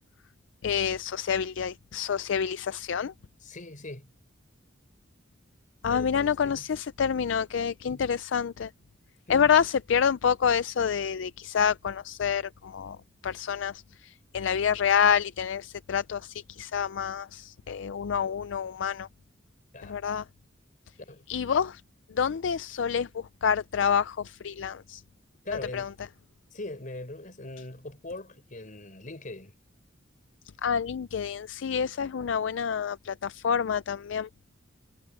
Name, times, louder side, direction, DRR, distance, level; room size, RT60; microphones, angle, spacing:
voice 1, 0.6-3.1 5.8-8.7 9.3-13.0 13.2-19.1 19.8-20.2 21.3-21.8 22.2-25.0 25.7-25.9 30.6-34.3, left 7 dB, 65° left, 0.4 m, -27 dB
voice 2, 3.4-4.1 5.9-6.7 7.8-8.1 9.3-9.6 19.7-20.0 21.0-21.3 25.4-25.9 26.5-29.6, left 2 dB, 45° left, 5.1 m, -41 dB
head